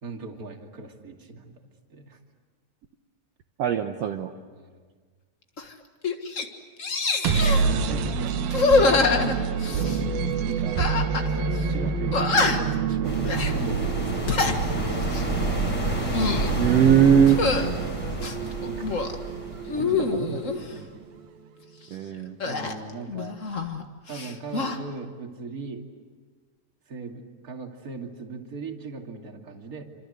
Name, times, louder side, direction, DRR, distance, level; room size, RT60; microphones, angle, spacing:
voice 1, 0.0-1.6 1.9-2.2 4.5-4.9 7.3-9.0 9.5-11.0 11.7-14.6 18.6-18.9 19.7-21.0 22.4-23.4 24.1-25.9 26.9-29.8, right 4 dB, 30° right, 2 dB, 2.5 m, -39 dB
voice 2, 3.6-4.3 7.5-7.8 16.6-17.4 19.7-19.8 20.1-20.4 21.9-22.4, right 9 dB, 65° right, 4 dB, 1.6 m, -20 dB
sound 1, 5.6-5.7 6.0-6.5 6.8-7.7 8.5-10.0 10.8-11.3 11.6-11.7 12.1-12.8 13.2-13.5 14.1-14.6 15.0-15.3 15.9-16.5 17.3-17.7 18.2-19.2 19.7-20.6 22.4-23.8 24.1-24.8, left 4 dB, 55° left, 0.8 m, -25 dB
sound 2, 7.0-20.8, right 5 dB, 85° right, 3.1 m, -28 dB
sound 3, 13.0-20.7, right 1 dB, 30° left, 4.9 m, -29 dB
28.5 x 26.5 x 8.1 m, 1.5 s
omnidirectional pair, 4.1 m